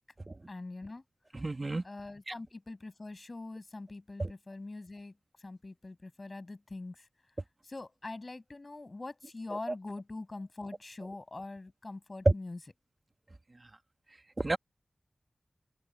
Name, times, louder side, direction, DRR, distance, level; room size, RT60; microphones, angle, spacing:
voice 1, 0.5-1.0 1.8-7.1 7.6-12.6, left 2 dB, 40° left, 7.4 m, -43 dB
voice 2, 1.3-1.8 2.3-2.4 4.2-4.3 14.4-14.6, right 2 dB, 35° right, 2.2 m, -33 dB
open air
wide cardioid pair, 60°, 0 cm